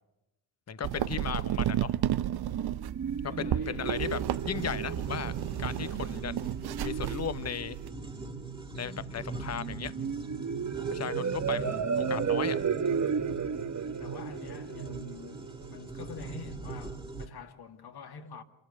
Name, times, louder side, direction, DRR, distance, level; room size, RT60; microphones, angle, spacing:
voice 1, 0.7-1.9 3.2-5.3 5.6-6.4 6.8-7.8 8.7-9.9 10.9-12.6, left 7 dB, 35° left, 1.1 m, -36 dB
sound 1, 0.8-7.9, right 12 dB, 55° right, 0.7 m, -33 dB
sound 2, 2.3-16.0, right 6 dB, 35° right, 1.1 m, -34 dB
voice 2, 3.3-4.1 5.8-6.0 10.0-10.5 14.0-18.4, left 5 dB, 55° left, 2.3 m, -47 dB
sound 3, 3.8-17.3, right 4 dB, 10° right, 2.3 m, -41 dB
28.0 x 13.5 x 8.4 m
hypercardioid pair, 45°, 47 cm